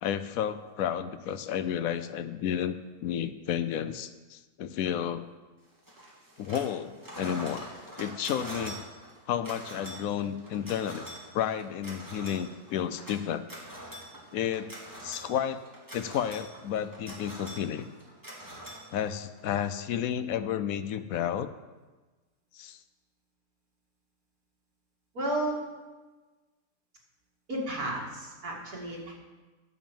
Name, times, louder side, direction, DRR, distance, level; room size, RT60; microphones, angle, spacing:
voice 1, 0.0-2.8 3.0-5.3 6.4-7.7 8.0-8.8 9.3-11.1 11.3-13.4 14.3-14.7 15.0-15.7 15.9-17.9 18.9-21.5 22.5-22.8, left 9 dB, 75° left, 12 dB, 1.0 m, -31 dB
sound 1, 5.9-6.7 7.0-19.4, equal, 15° right, 2.2 m, -44 dB
voice 2, 25.1-25.6 27.5-29.1, right 1 dB, 90° right, -3 dB, 2.8 m, -32 dB
10.0 x 7.3 x 7.1 m, 1.3 s
omnidirectional pair, 1.5 m